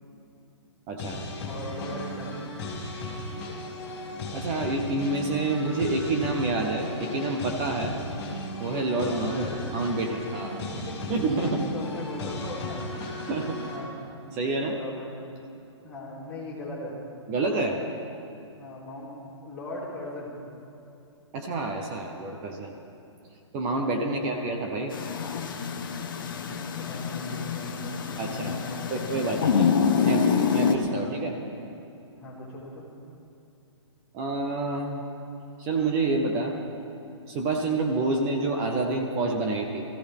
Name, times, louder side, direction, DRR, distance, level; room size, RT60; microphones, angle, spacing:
voice 1, 0.9-1.2 4.3-8.0 8.6-9.5 9.7-10.5 11.1-11.7 13.2-13.6 14.3-14.8 17.3-17.8 21.3-22.8 23.5-24.9 28.2-28.5 28.9-29.7 30.1-30.2 30.5-31.4 34.1-35.0 35.6-36.6 37.3-39.8, right 2 dB, 10° right, 2 dB, 0.5 m, -28 dB
sound 1, 1.0-13.8, left 1 dB, 20° left, 2.6 m, -36 dB
voice 2, 1.4-2.3 7.9-8.1 8.9-9.7 10.4-10.9 11.4-12.8 13.3-13.4 13.7-14.0 14.6-15.1 15.8-16.9 18.6-19.1 19.4-20.3 24.0-24.5 26.2-29.5 29.8-30.2 30.9-31.1 32.2-32.8, left 1 dB, 5° left, -9 dB, 2.5 m, -40 dB
sound 2, 24.9-30.8, left 6 dB, 45° left, 1.0 m, -26 dB
20.5 x 14.5 x 3.5 m, 2.8 s
hypercardioid pair, 175°, 16 cm